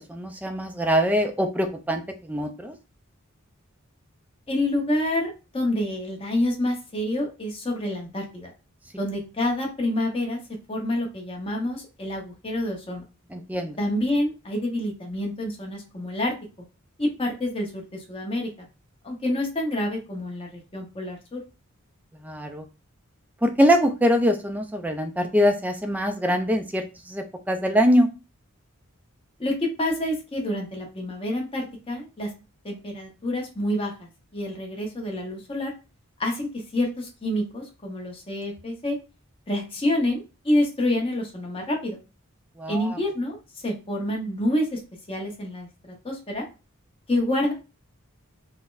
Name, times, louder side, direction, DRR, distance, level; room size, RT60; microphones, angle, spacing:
voice 1, 0.0-2.8 13.3-13.8 22.2-22.6 23.4-28.1 42.6-43.0, equal, 5° right, 5 dB, 0.3 m, -23 dB
voice 2, 4.5-8.5 9.0-10.4 10.7-13.0 13.8-16.3 17.0-18.7 19.0-21.4 29.4-32.3 32.6-35.7 36.2-39.0 39.5-42.0 42.7-43.4 43.6-44.8 45.1-45.7 46.0-46.5 47.1-47.5, left 1 dB, 25° left, 0 dB, 0.7 m, -27 dB
4.0 x 2.0 x 2.4 m, 0.30 s
head